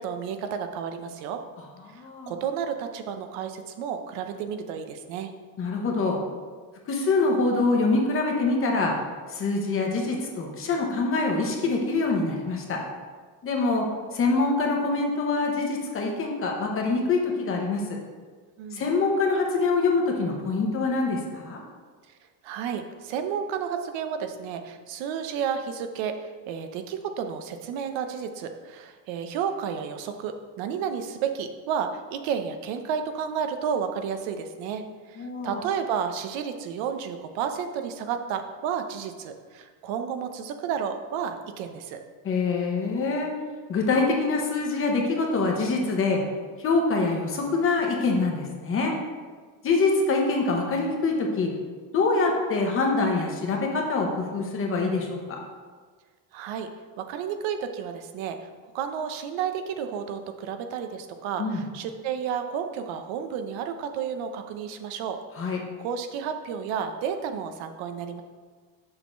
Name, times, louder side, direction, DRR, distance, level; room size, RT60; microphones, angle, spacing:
voice 1, 0.0-1.4 1.9-5.3 18.6-18.9 22.4-42.0 56.3-56.7 57.0-68.2, right 7 dB, 90° right, 7 dB, 0.8 m, -32 dB
voice 2, 1.9-2.3 5.6-6.2 6.9-8.9 9.3-12.8 13.4-17.8 18.7-21.6 35.2-35.6 42.2-43.3 43.7-46.2 46.6-48.9 49.6-51.5 51.9-55.4 61.4-61.6 65.4-65.6, left 3 dB, 30° left, 1 dB, 0.9 m, -25 dB
6.5 x 3.7 x 6.1 m, 1.5 s
cardioid pair, 175°, 45 cm